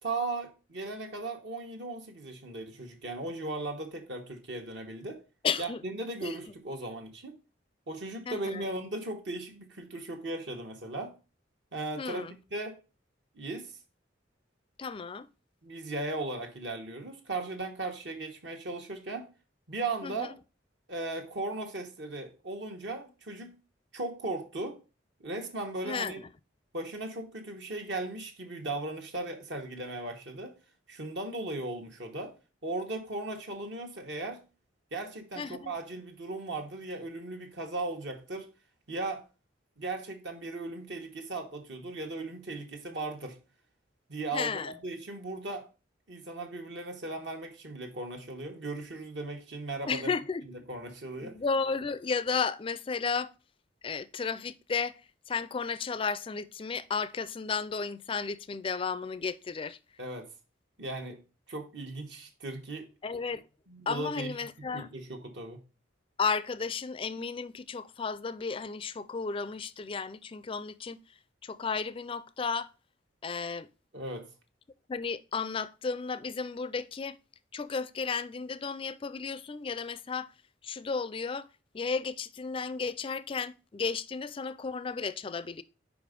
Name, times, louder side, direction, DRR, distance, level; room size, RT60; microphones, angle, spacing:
voice 1, 0.0-5.2 5.6-7.3 7.9-11.1 11.7-12.2 12.5-12.8 13.3-13.7 15.6-19.3 19.7-20.3 20.9-23.5 23.9-24.8 25.2-26.2 26.7-30.5 30.9-32.3 32.6-34.4 34.9-38.5 38.9-39.2 39.8-43.4 44.1-45.7 46.1-50.1 50.5-51.4 60.0-60.3 60.8-61.2 61.5-62.9 63.7-64.3 64.7-65.6 73.9-74.3, right 2 dB, 65° right, 1.2 m, -37 dB
voice 2, 5.4-5.8 6.2-6.4 8.3-8.7 12.0-12.3 14.8-15.3 20.0-20.3 25.9-26.3 35.4-35.7 44.3-44.7 49.9-50.4 51.2-53.3 53.8-54.9 55.3-59.8 63.0-63.4 63.9-64.9 66.2-71.0 71.4-72.7 73.2-73.7 74.9-77.2 77.5-80.3 80.6-81.5 81.7-85.6, left 5 dB, 30° left, 0.4 m, -33 dB
5.0 x 5.0 x 5.1 m
head